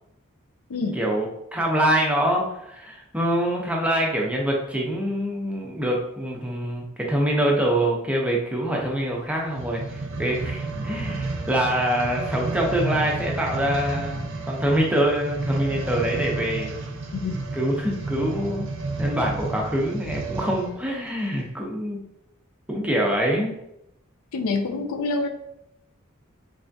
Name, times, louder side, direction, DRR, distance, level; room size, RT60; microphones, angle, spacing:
voice 1, 0.9-16.8 17.5-22.1 22.7-23.5, right 1 dB, 5° right, -1 dB, 0.5 m, -25 dB
sound 1, 9.4-20.8 21.4-21.5, right 3 dB, 60° right, 0.5 m, -31 dB
voice 2, 24.3-25.3, left 3 dB, 85° left, 6 dB, 0.4 m, -26 dB
3.4 x 3.3 x 2.6 m, 0.81 s
head